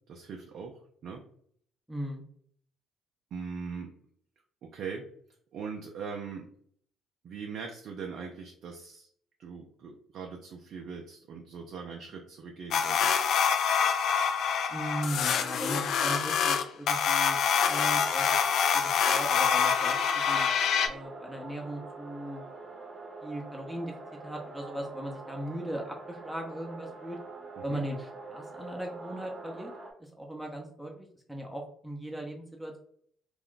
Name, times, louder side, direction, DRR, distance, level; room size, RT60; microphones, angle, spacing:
voice 1, 0.1-1.2 3.3-3.9 4.7-5.1 5.5-6.5 7.2-9.1 9.4-13.2 27.6-27.8, right 5 dB, 60° right, 1 dB, 0.4 m, -41 dB
voice 2, 1.9-2.2 14.7-18.3 18.7-20.5 20.8-22.5 23.2-23.9 24.2-27.2 27.6-29.7 30.0-32.8, right 1 dB, 5° right, 0 dB, 0.7 m, -38 dB
sound 1, 12.7-20.9, left 7 dB, 65° left, 0.3 m, -26 dB
sound 2, 17.5-29.9, right 3 dB, 40° right, 0.8 m, -45 dB
2.4 x 2.1 x 3.7 m, 0.62 s
hypercardioid pair, 55°, 0 cm